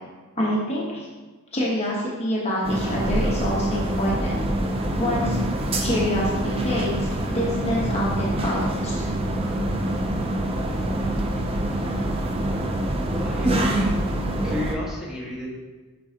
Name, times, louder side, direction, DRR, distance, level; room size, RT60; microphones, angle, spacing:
voice 1, 0.4-1.1 1.5-4.4 5.0-5.4 5.8-9.1, equal, 30° left, -6 dB, 1.1 m, -26 dB
sound 1, 2.6-14.8, right 1 dB, 25° right, 0.6 m, -25 dB
voice 2, 13.2-13.9 14.4-15.5, left 1 dB, ahead, -6 dB, 1.6 m, -33 dB
8.3 x 6.0 x 2.9 m, 1.3 s
head